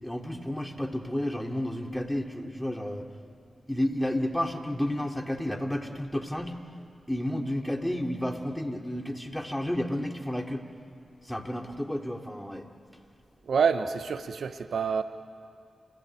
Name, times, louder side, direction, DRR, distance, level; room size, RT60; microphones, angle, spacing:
voice 1, 0.0-3.0 3.7-6.6 7.1-10.6 11.2-12.6, left 1 dB, 10° left, 3 dB, 2.8 m, -31 dB
voice 2, 13.5-15.0, right 6 dB, 80° right, 10 dB, 0.9 m, -27 dB
30.0 x 16.0 x 9.6 m, 2.4 s
cardioid pair, 40°, 0 cm